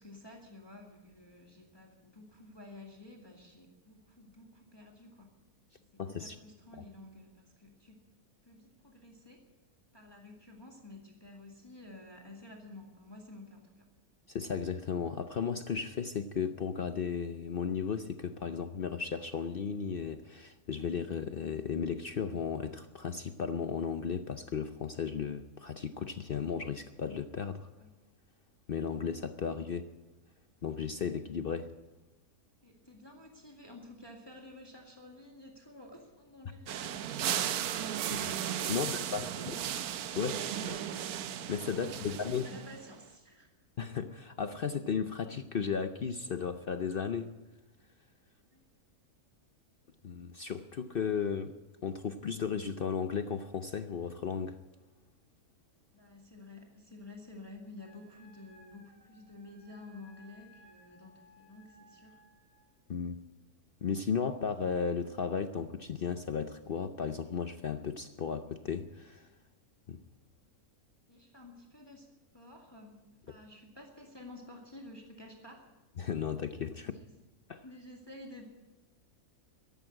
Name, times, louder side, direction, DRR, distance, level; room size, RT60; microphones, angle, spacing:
voice 1, 0.0-5.3 5.9-8.0 8.4-9.4 9.9-13.9 27.7-27.9 32.6-37.2 38.7-39.8 40.0-40.7 41.8-43.5 48.5-48.6 55.9-62.2 71.1-75.7 76.8-77.1 77.6-78.5, left 2 dB, 15° left, 0 dB, 2.0 m, -51 dB
voice 2, 6.0-6.4 6.7-6.8 14.3-27.7 28.7-29.8 30.6-31.7 38.1-38.4 38.7-39.5 40.2-40.8 41.5-42.5 43.8-47.4 50.0-51.5 51.8-54.6 62.9-63.2 63.8-69.3 69.9-70.0 76.0-76.9 77.5-77.6, left 6 dB, 55° left, 9 dB, 0.6 m, -35 dB
sound 1, 36.7-42.9, right 10 dB, 75° right, 1.2 m, -35 dB
Wind instrument woodwind instrument, 57.8-62.7, left 1 dB, 20° right, 3.9 m, -61 dB
14.0 x 11.0 x 8.7 m, 1.1 s
omnidirectional pair, 1.6 m